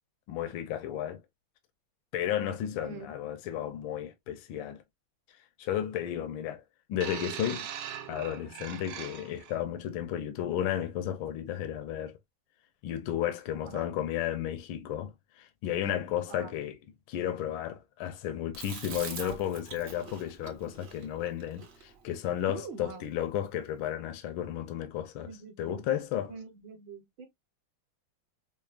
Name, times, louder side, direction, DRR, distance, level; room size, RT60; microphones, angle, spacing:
voice 1, 0.3-1.2 2.1-4.8 5.4-6.6 6.9-7.7 8.1-12.2 12.8-16.8 17.1-25.3 25.6-26.3, left 11 dB, 80° left, 1.4 m, -33 dB
sound 1, 7.0-9.6 10.5-10.6, right 10 dB, 85° right, 1.5 m, -40 dB
Chewing mastication, 18.5-22.9, right 5 dB, 50° right, 0.8 m, -44 dB
voice 2, 19.1-19.4 22.8-23.0 25.2-25.8 26.3-27.3, right 5 dB, 65° right, 1.6 m, -45 dB
5.5 x 2.1 x 2.3 m
omnidirectional pair, 2.2 m